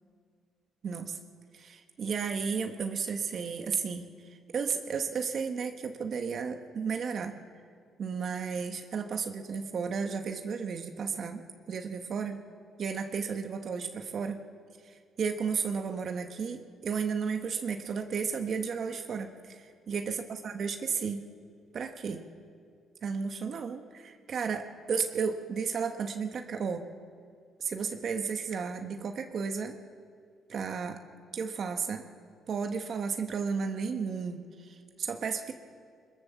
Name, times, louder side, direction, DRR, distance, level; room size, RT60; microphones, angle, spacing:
voice 1, 0.8-1.2 1.5-7.4 8.0-12.4 12.8-14.4 14.8-20.1 20.4-21.2 21.7-22.2 23.0-26.9 27.6-29.8 30.5-31.0 31.3-32.0 32.5-35.5, right 6 dB, 50° right, 6 dB, 1.3 m, -33 dB
22.5 x 22.0 x 7.1 m, 2.1 s
cardioid pair, 110°, 0 cm